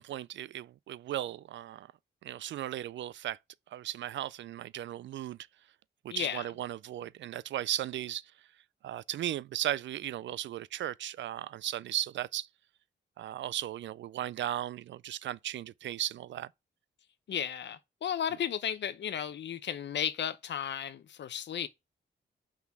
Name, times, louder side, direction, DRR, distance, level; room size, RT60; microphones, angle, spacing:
voice 1, 0.0-1.9 2.2-3.4 3.7-5.4 6.0-8.3 8.8-12.5 13.2-16.5, right 12 dB, 75° right, 0.4 m, -36 dB
voice 2, 6.1-6.4 17.3-21.7, left 9 dB, 70° left, 0.8 m, -34 dB
5.8 x 4.0 x 6.0 m
cardioid pair, 110°, 19 cm